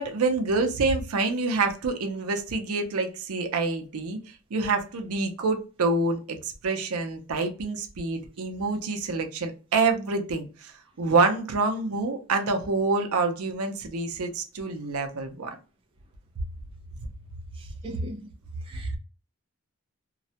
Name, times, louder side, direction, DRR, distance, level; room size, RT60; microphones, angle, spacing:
voice 1, 0.0-4.2 4.5-15.6, right 3 dB, 85° right, 0.5 m, -27 dB
voice 2, 17.8-18.2 18.7-19.0, right 1 dB, 25° right, 0.3 m, -38 dB
2.2 x 2.1 x 2.7 m
head